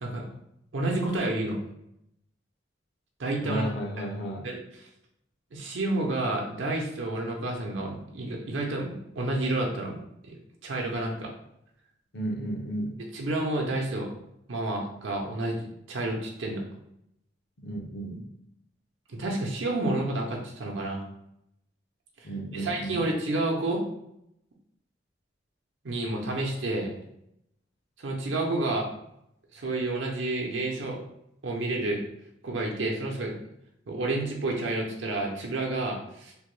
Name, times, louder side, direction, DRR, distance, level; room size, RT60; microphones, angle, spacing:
voice 1, 0.7-1.6 3.2-3.7 4.4-4.6 5.5-10.3 10.6-11.3 13.1-14.1 14.5-16.6 19.1-21.0 22.5-23.8 25.8-26.9 28.0-28.9 29.5-31.0 31.4-32.0 32.4-33.3 33.9-36.5, right 2 dB, 85° right, 0 dB, 0.6 m, -30 dB
voice 2, 3.4-4.5 12.1-13.0 17.6-18.3 22.2-23.1, right 1 dB, 60° left, 1 dB, 0.6 m, -33 dB
3.4 x 2.2 x 3.1 m, 0.78 s
head